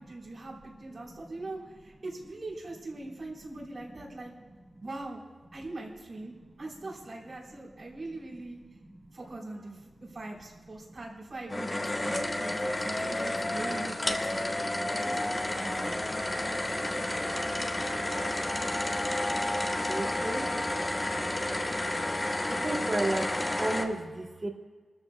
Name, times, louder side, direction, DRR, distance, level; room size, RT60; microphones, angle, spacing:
voice 1, 0.0-4.3 4.8-5.2 5.5-8.6 9.1-14.4 14.9-16.0, right 2 dB, 60° right, -2 dB, 4.4 m, -42 dB
sound 1, 11.5-23.8, left 1 dB, 30° left, 1.5 m, -31 dB
voice 2, 19.8-20.5 22.5-23.3 23.6-24.5, right 1 dB, 40° right, 0 dB, 2.4 m, -32 dB
28.0 x 14.0 x 2.3 m, 1.4 s
cardioid pair, 50°, 0 cm